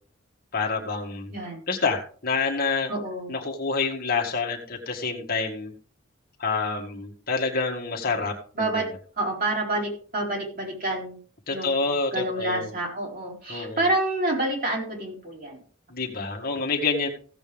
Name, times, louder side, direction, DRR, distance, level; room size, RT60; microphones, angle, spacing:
voice 1, 0.5-1.3 1.7-2.9 3.3-5.7 6.4-8.8 11.5-12.7 13.5-13.9 15.9-17.1, left 4 dB, 45° left, 1 dB, 1.9 m, -27 dB
voice 2, 1.3-1.6 2.9-3.3 8.6-8.9 9.2-11.2 11.5-15.6, right 2 dB, 45° right, -1 dB, 4.6 m, -28 dB
16.0 x 8.1 x 3.5 m, 0.43 s
head